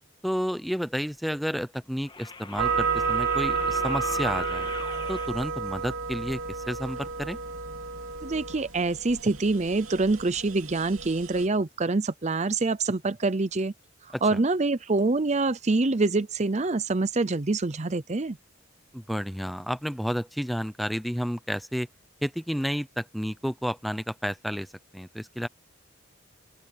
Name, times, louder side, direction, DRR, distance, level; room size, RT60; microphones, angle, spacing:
voice 1, 0.2-4.7 5.1-7.4 14.1-14.4 18.9-21.9 22.2-24.7 24.9-25.5, equal, ahead, 0.8 m, -31 dB
sound 1, 2.1-5.3 7.1-7.2, left 2 dB, 25° left, 2.8 m, -35 dB
sound 2, 2.6-11.5, right 6 dB, 85° right, 2.8 m, -31 dB
voice 2, 8.2-13.7 14.0-18.4, right 3 dB, 35° right, 0.6 m, -25 dB
open air
head